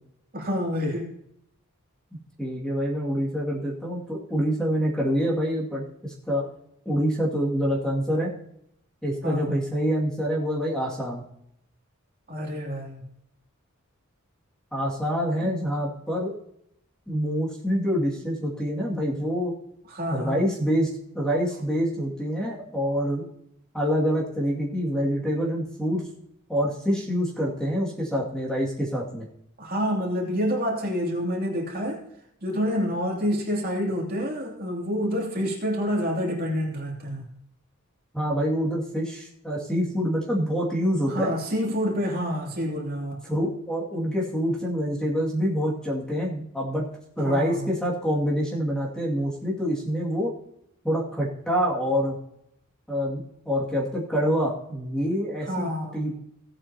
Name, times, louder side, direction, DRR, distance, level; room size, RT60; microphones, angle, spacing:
voice 1, 0.3-1.1 9.2-9.6 12.3-13.0 15.4-15.5 19.9-20.4 29.6-32.0 32.4-37.3 41.1-43.2 47.2-47.7 55.4-56.1, equal, 45° right, -1 dB, 2.9 m, -28 dB
voice 2, 2.4-6.5 6.9-8.3 9.0-11.2 14.7-16.3 17.1-19.5 20.1-23.2 23.7-26.0 26.5-29.3 38.1-41.3 43.3-46.9 47.2-50.3 50.8-52.2 52.9-53.2 53.5-56.1, equal, 5° left, -4 dB, 2.3 m, -26 dB
17.0 x 8.7 x 2.9 m, 0.74 s
head